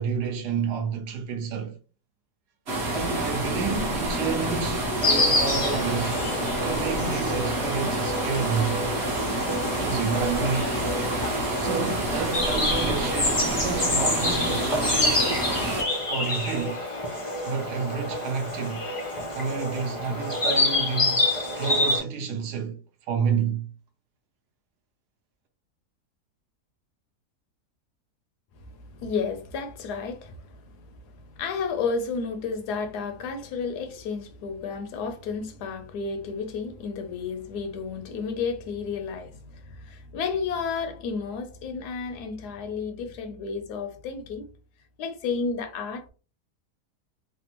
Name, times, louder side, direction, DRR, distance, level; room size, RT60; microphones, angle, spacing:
voice 1, 0.0-1.7 2.9-6.2 6.6-8.8 9.5-10.8 11.6-15.3 16.1-16.8 17.4-18.8 19.3-21.3 21.6-22.8 23.1-23.7, right 6 dB, 75° right, 1.2 m, -30 dB
sound 1, 2.7-15.8, right 1 dB, 45° right, 1.0 m, -28 dB
Insect, 5.0-22.0, left 2 dB, 55° left, 0.3 m, -27 dB
voice 2, 28.5-44.5 45.0-46.0, left 5 dB, 80° left, 1.1 m, -32 dB
3.4 x 2.1 x 2.9 m
omnidirectional pair, 1.8 m